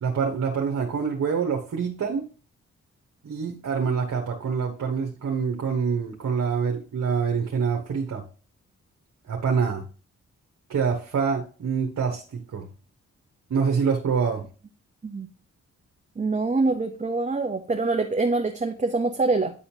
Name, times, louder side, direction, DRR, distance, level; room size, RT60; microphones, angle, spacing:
voice 1, 0.0-2.3 3.2-8.2 9.3-9.8 10.7-12.7 13.5-14.5, right 6 dB, 60° right, 1.2 m, -26 dB
voice 2, 16.2-19.5, right 3 dB, 25° right, 0.8 m, -25 dB
9.1 x 4.3 x 2.8 m
supercardioid pair, 45°, 32 cm